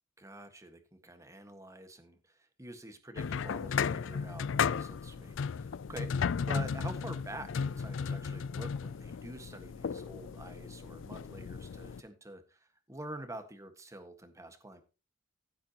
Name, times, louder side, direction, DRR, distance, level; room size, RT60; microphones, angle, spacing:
voice 1, 0.2-14.8, right 1 dB, 15° right, 8 dB, 1.6 m, -47 dB
sound 1, 3.2-12.0, left 6 dB, 70° left, 0.4 m, -35 dB
15.0 x 8.1 x 3.0 m, 0.33 s
head